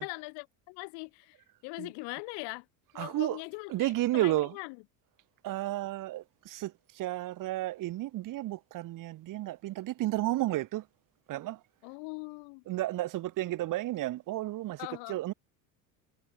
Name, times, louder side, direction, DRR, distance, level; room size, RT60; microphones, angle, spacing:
voice 1, 0.0-1.3 1.6-2.6 2.9-4.8 11.8-12.6 14.8-15.2, left 33 dB, 70° left, 3.3 m, -41 dB
voice 2, 3.0-3.4 3.7-4.6 5.4-10.9 11.3-11.6 12.7-14.8 15.1-15.3, right 16 dB, 50° right, 1.9 m, -32 dB
supercardioid pair, 115°, 41 cm